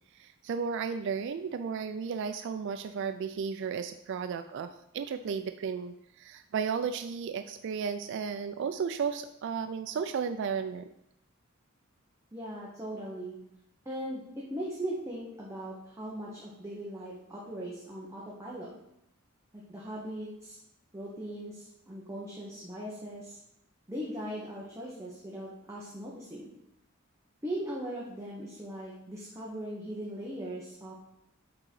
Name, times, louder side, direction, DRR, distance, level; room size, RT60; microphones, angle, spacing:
voice 1, 0.1-10.9, right 6 dB, 60° right, 9 dB, 0.3 m, -34 dB
voice 2, 12.3-13.4 13.8-18.7 19.5-20.6 20.9-23.4 23.9-26.5 27.4-30.9, right 1 dB, 15° right, -5 dB, 1.2 m, -39 dB
8.7 x 3.9 x 4.6 m, 0.79 s
head